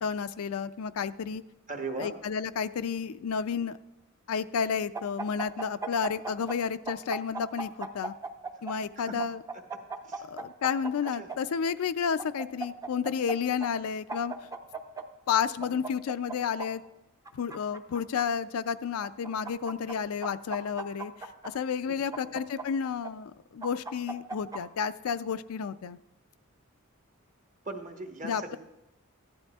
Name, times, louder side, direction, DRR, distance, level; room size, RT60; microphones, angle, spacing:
voice 1, 0.0-1.4 2.0-3.8 4.3-8.1 8.6-9.4 10.3-14.3 15.3-16.8 17.3-21.1 21.4-26.0 28.2-28.6, left 6 dB, 80° left, 12 dB, 0.4 m, -31 dB
voice 2, 1.7-2.1 8.5-8.6 9.0-9.2 9.7-9.8 10.1-10.3 11.2-11.3 15.7-15.8 21.9-22.4 27.6-28.6, right 3 dB, 40° right, 4 dB, 1.1 m, -39 dB
sound 1, 4.9-6.6 6.9-8.7 9.2-11.4 12.2-13.3 13.6-13.7 14.1-15.0 15.6-16.7 17.3-18.2 19.0-19.9 20.2-21.5 22.1-23.1 23.6-24.6, right 4 dB, 15° right, 0.6 m, -37 dB
15.0 x 11.5 x 2.4 m, 0.92 s
head